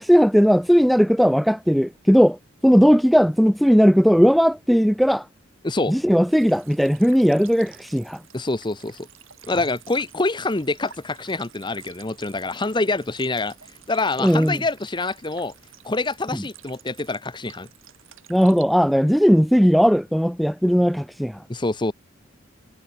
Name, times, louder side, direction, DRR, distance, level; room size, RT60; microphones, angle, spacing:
voice 1, 0.0-5.3 5.9-8.2 14.2-14.6 16.3-16.4 18.3-21.4, equal, ahead, 0.4 m, -17 dB
sound 1, 6.3-18.6, right 11 dB, 85° right, 6.5 m, -49 dB
voice 2, 8.3-9.1 9.5-13.5 13.9-15.5 15.8-17.7 21.5-21.9, left 2 dB, 25° left, 1.0 m, -26 dB
head